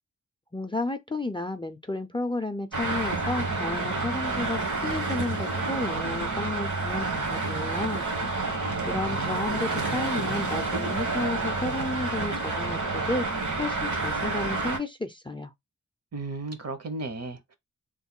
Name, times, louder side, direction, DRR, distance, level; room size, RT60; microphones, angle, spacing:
voice 1, 0.5-8.1 8.9-13.3 13.6-15.5, left 2 dB, 15° left, 0.4 m, -32 dB
Traffic noise roadway noise, 2.7-14.8, right 3 dB, 75° right, 1.2 m, -29 dB
voice 2, 8.6-9.4 16.1-17.5, right 3 dB, 55° right, 0.8 m, -36 dB
3.1 x 2.1 x 3.6 m
wide cardioid pair, 75°, 30 cm